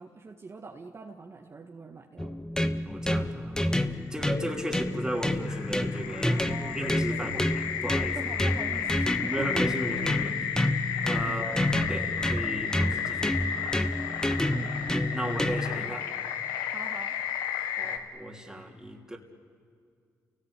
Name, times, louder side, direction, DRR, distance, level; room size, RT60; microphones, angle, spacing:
voice 1, 0.0-2.4 4.1-4.4 6.2-6.8 7.1-7.5 8.0-9.6 11.2-11.5 14.5-14.7 16.7-17.1, right 4 dB, 40° right, 1 dB, 1.8 m, -43 dB
sound 1, 2.2-15.9, left 1 dB, 10° left, 1.2 m, -29 dB
voice 2, 2.8-6.4 6.7-7.5 7.8-8.2 9.3-10.4 11.0-13.8 15.1-16.1 17.7-19.2, equal, 10° right, 0 dB, 3.3 m, -35 dB
sound 2, 3.9-18.0, left 8 dB, 90° left, 1.2 m, -33 dB
29.0 x 18.0 x 8.5 m, 2.2 s
supercardioid pair, 50°, 7 cm